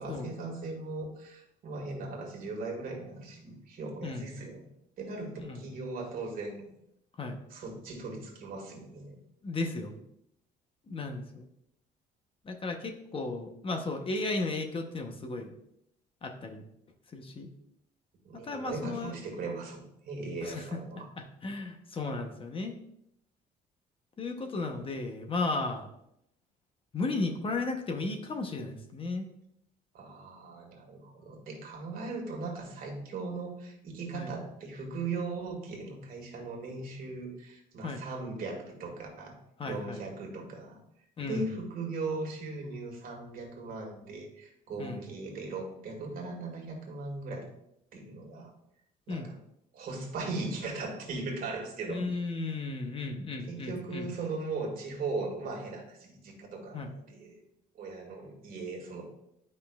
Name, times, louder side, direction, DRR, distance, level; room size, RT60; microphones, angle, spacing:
voice 1, 0.0-4.6 5.0-6.7 7.5-9.2 18.3-21.1 29.9-39.4 39.6-40.8 41.2-47.5 47.9-48.5 49.1-49.4 49.7-52.0 53.5-57.4 57.8-59.0, right 3 dB, 60° right, 1 dB, 1.9 m, -38 dB
voice 2, 4.0-4.3 5.4-5.7 7.2-7.4 9.4-10.0 10.9-11.5 12.4-15.5 16.2-16.6 17.1-17.5 18.3-19.2 20.4-20.8 21.2-22.8 24.2-25.9 26.9-29.3 34.1-34.4 37.8-38.0 39.6-40.0 41.2-41.5 44.8-45.1 49.1-49.3 51.9-54.1 56.7-56.9, left 3 dB, 30° left, 5 dB, 0.8 m, -35 dB
9.1 x 5.4 x 2.3 m, 0.77 s
cardioid pair, 110°, 17 cm